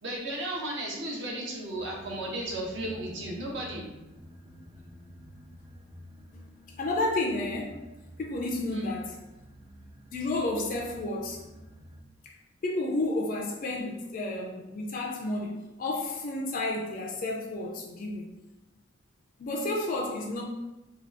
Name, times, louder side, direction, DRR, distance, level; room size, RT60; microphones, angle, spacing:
voice 1, 0.0-3.9 8.7-8.9, right 1 dB, 65° right, -2 dB, 0.8 m, -34 dB
sound 1, 1.7-12.0, equal, 20° right, 0.5 m, -50 dB
voice 2, 6.8-7.8 8.2-9.2 10.1-11.4 12.2-12.3 12.6-18.3 19.4-20.4, left 2 dB, 45° left, -1 dB, 0.4 m, -31 dB
2.8 x 2.3 x 3.2 m, 1.0 s
head